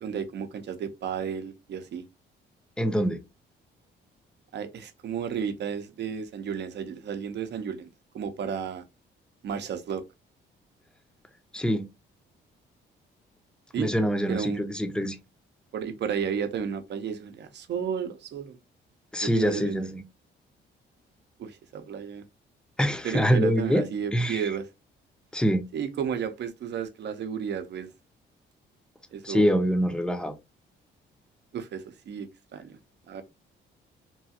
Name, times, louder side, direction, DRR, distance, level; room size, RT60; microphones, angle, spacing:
voice 1, 0.0-2.0 4.5-7.9 8.1-8.8 9.4-10.0 13.7-13.9 14.3-14.6 15.7-18.6 19.3-19.9 21.4-22.2 23.0-24.6 25.7-27.9 29.1-29.5 31.5-32.8 33.1-33.2, right 7 dB, 60° right, 0.7 m, -32 dB
voice 2, 2.8-3.2 11.5-11.8 13.8-15.2 19.1-20.0 22.8-23.8 24.1-24.5 25.3-25.7 29.2-30.3, equal, 5° left, 0.6 m, -25 dB
3.0 x 2.3 x 2.7 m
cardioid pair, 90°, 20 cm